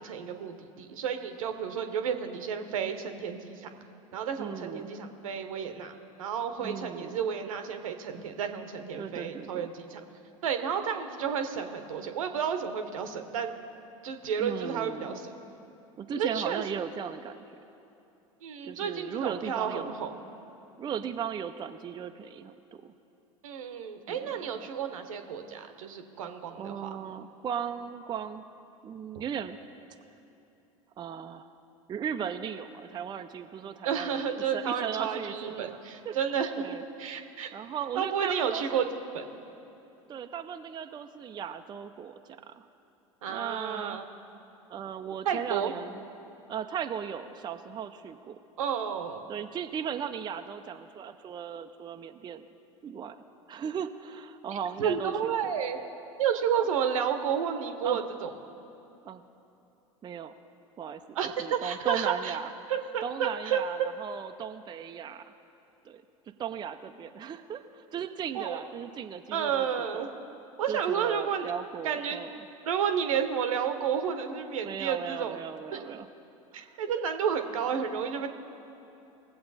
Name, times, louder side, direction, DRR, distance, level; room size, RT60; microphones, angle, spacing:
voice 1, 0.0-3.7 4.1-10.0 10.4-13.6 14.0-15.3 16.1-16.6 18.4-20.1 23.4-26.9 33.8-37.5 38.0-38.9 39.1-39.4 43.2-44.0 45.2-45.7 48.6-49.2 54.8-55.8 56.2-58.3 61.1-62.4 62.7-63.6 68.3-68.6 69.3-70.1 70.6-71.5 71.8-72.3 72.6-75.4 75.7-75.8 76.5-78.3, right 7 dB, 75° right, 7 dB, 1.0 m, -31 dB
voice 2, 4.4-4.9 6.6-7.2 9.0-9.7 14.4-15.2 16.0-17.4 18.6-19.9 20.8-22.9 24.1-24.6 26.6-28.4 28.8-29.6 31.0-31.5 31.9-35.8 36.0-36.2 36.6-36.8 37.5-38.9 40.1-42.7 43.3-44.0 44.7-46.0 46.5-48.4 49.3-52.5 52.8-53.2 53.5-55.5 57.8-58.0 59.1-59.2 60.0-60.3 60.8-62.5 63.0-65.2 65.8-66.0 66.4-70.2 70.7-72.5 74.6-76.1 76.5-76.7, right 8 dB, 25° right, 7 dB, 0.5 m, -37 dB
19.5 x 7.7 x 4.1 m, 2.9 s
hypercardioid pair, 85°, 17 cm